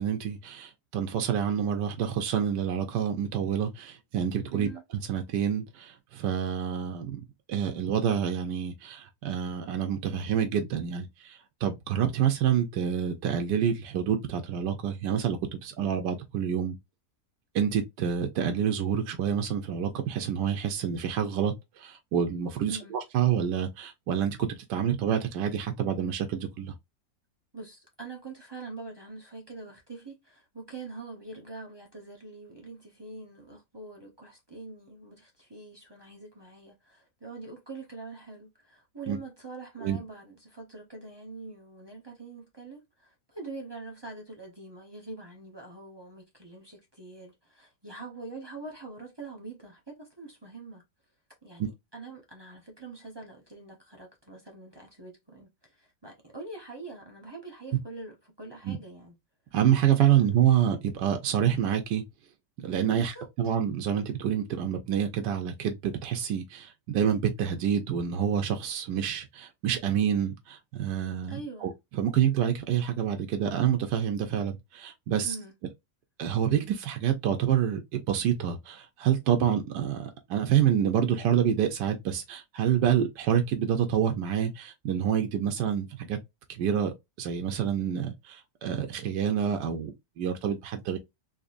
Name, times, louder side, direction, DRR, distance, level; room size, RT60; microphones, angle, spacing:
voice 1, 0.0-4.7 5.1-16.8 17.5-26.7 39.1-39.2 39.8-40.0 51.6-51.7 58.6-58.8 59.5-62.0 62.6-75.3 76.2-86.2 86.5-91.0, right 9 dB, 85° right, 1.3 m, -27 dB
voice 2, 4.5-4.8 22.7-22.9 27.5-50.8 51.4-59.1 60.1-60.2 62.9-63.3 71.3-71.7 75.2-75.5, right 3 dB, 20° right, 0.6 m, -44 dB
4.0 x 2.9 x 2.5 m
omnidirectional pair, 1.8 m